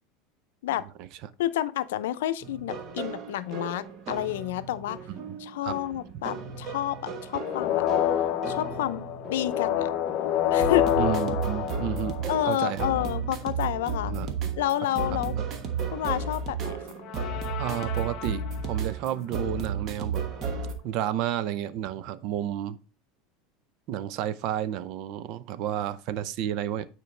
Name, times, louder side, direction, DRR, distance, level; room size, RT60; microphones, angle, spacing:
voice 1, 1.4-5.0 5.4-7.9 8.5-9.9 10.5-10.9 12.3-14.1 14.6-15.3 15.9-16.8, left 13 dB, 90° left, 0.6 m, -29 dB
sound 1, 2.4-20.7, right 5 dB, 35° right, 1.2 m, -34 dB
sound 2, 7.4-12.7 17.0-18.7, left 11 dB, 45° left, 0.6 m, -28 dB
voice 2, 11.0-12.9 14.1-14.3 15.4-15.5 17.6-20.3 20.8-22.8 23.9-26.9, right 11 dB, 50° right, 0.6 m, -31 dB
9.3 x 4.6 x 3.3 m
supercardioid pair, 145°, 0 cm